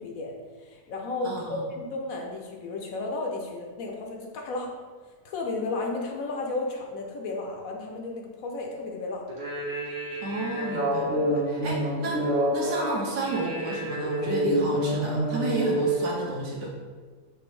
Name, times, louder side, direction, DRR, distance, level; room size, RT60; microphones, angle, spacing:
voice 1, 0.0-4.7 5.2-9.3, left 3 dB, 70° left, 0 dB, 1.1 m, -33 dB
voice 2, 1.2-1.6 10.2-16.7, right 2 dB, 60° right, -3 dB, 1.0 m, -32 dB
sound 1, 9.3-16.0, right 1 dB, 35° right, 0.9 m, -27 dB
6.0 x 2.6 x 3.2 m, 1.5 s
omnidirectional pair, 1.6 m